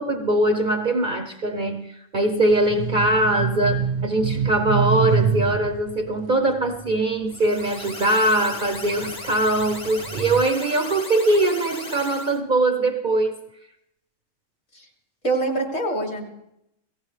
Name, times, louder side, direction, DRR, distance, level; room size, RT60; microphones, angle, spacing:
voice 1, 0.0-13.4, right 1 dB, 45° right, 5 dB, 0.7 m, -22 dB
sound 1, 2.5-8.0 8.6-10.4, right 6 dB, 85° right, 1.6 m, -27 dB
sound 2, 7.3-12.4, left 2 dB, 35° left, 1.3 m, -36 dB
voice 2, 15.2-16.2, right 2 dB, 55° left, 0 dB, 3.0 m, -24 dB
18.5 x 15.5 x 3.2 m, 0.80 s
omnidirectional pair, 1.4 m